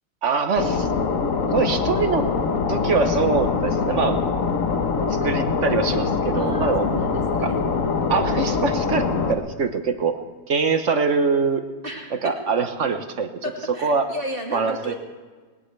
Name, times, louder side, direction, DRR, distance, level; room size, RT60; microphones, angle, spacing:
voice 1, 0.2-0.9 1.5-2.3 2.7-4.2 5.2-6.9 7.4-7.5 8.1-10.2 10.5-11.7 12.1-14.1 14.5-15.0, right 5 dB, 50° right, 8 dB, 1.1 m, -23 dB
sound 1, 0.6-9.3, left 5 dB, 50° left, 1.3 m, -23 dB
voice 2, 6.3-7.6 11.8-12.3 13.4-15.0, equal, 30° right, -1 dB, 2.3 m, -33 dB
20.5 x 19.5 x 3.3 m, 1.4 s
omnidirectional pair, 2.0 m